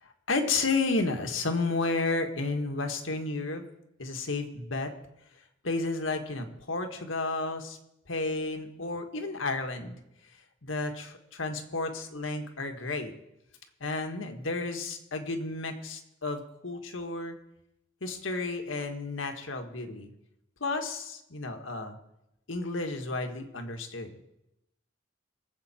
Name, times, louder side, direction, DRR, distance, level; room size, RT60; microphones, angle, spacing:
voice 1, 0.0-3.6 4.0-4.9 5.6-7.8 8.1-10.0 10.6-13.1 13.8-17.4 18.0-20.1 20.6-22.0 22.5-24.1, left 3 dB, 90° left, 5 dB, 1.7 m, -32 dB
23.5 x 8.1 x 4.4 m, 0.86 s
head